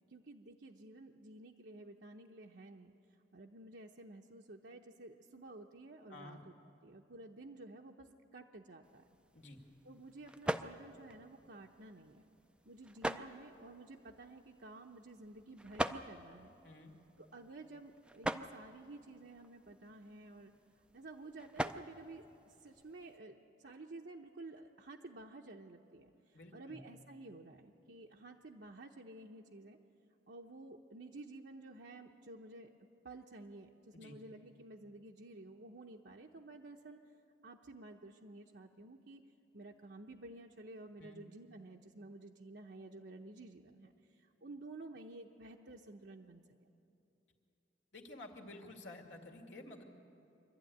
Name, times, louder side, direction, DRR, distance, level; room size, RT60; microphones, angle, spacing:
voice 1, 0.1-2.9 3.3-6.5 6.8-9.0 9.8-12.2 12.6-16.5 17.2-20.5 20.9-29.8 30.3-32.7 33.0-37.0 37.4-39.2 39.5-46.7, right 2 dB, 70° right, 1 dB, 0.8 m, -52 dB
voice 2, 6.1-6.4 9.3-9.6 16.6-16.9 26.3-26.8 33.9-34.2 41.0-41.2 47.9-49.8, left 2 dB, 80° left, 3 dB, 2.2 m, -52 dB
sound 1, 8.8-23.2, right 1 dB, 5° right, 0.4 m, -45 dB
24.5 x 12.5 x 9.4 m, 2.9 s
head